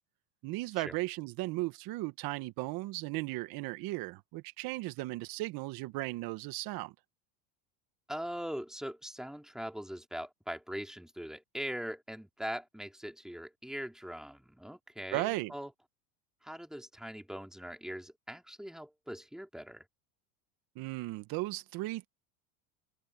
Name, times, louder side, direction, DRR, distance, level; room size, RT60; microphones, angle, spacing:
voice 1, 0.4-6.9 15.1-15.5 20.8-22.1, right 20 dB, 55° right, 1.4 m, -36 dB
voice 2, 8.1-15.7 16.4-19.9, equal, ahead, 3.0 m, -41 dB
supercardioid pair, 115°, 43 cm